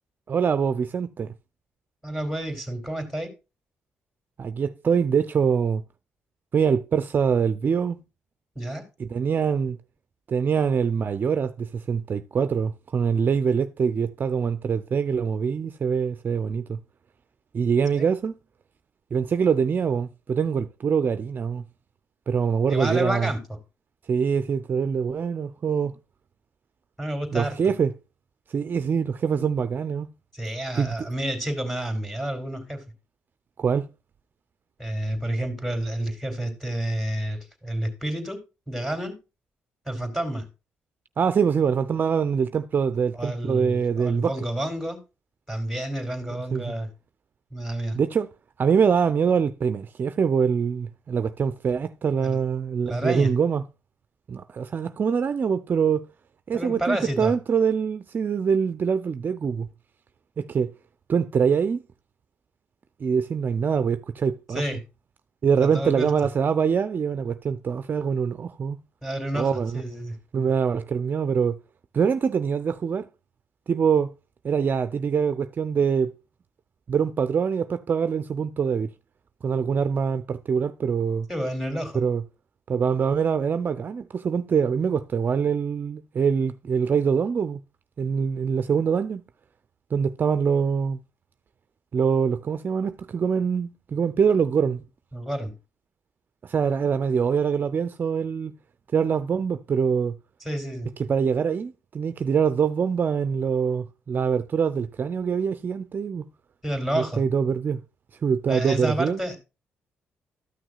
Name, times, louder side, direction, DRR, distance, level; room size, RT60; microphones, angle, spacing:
voice 1, 0.3-1.3 4.4-5.8 6.5-8.0 9.0-9.8 10.3-16.8 17.5-18.3 19.1-21.6 22.3-23.3 24.1-26.0 27.3-27.9 28.5-30.1 30.7-31.0 33.6-33.9 41.2-44.4 46.5-46.7 47.9-48.3 48.6-53.6 54.3-56.1 56.5-59.7 60.4-60.7 61.1-61.8 63.0-64.6 65.4-68.8 69.3-69.8 70.3-71.6 71.9-73.1 73.7-74.1 74.4-76.1 76.9-78.9 79.4-81.3 81.9-82.2 82.7-87.6 88.0-89.2 89.9-91.0 91.9-94.8 96.4-98.5 98.9-100.1 101.0-106.2 106.9-107.8 108.2-109.2, right 6 dB, 45° right, 0.5 m, -24 dB
voice 2, 2.0-3.3 8.5-8.8 17.9-18.1 22.7-23.4 27.0-27.5 30.3-32.8 34.8-38.4 38.7-39.2 39.9-40.5 43.1-45.0 45.5-46.9 47.5-48.0 52.2-52.4 52.8-53.3 56.5-57.3 64.5-64.8 65.6-66.1 69.0-70.1 81.3-82.0 95.1-95.5 100.4-100.9 106.6-107.2 108.5-109.4, right 1 dB, 5° left, 2.8 m, -29 dB
13.0 x 6.1 x 2.3 m
cardioid pair, 90°, 5 cm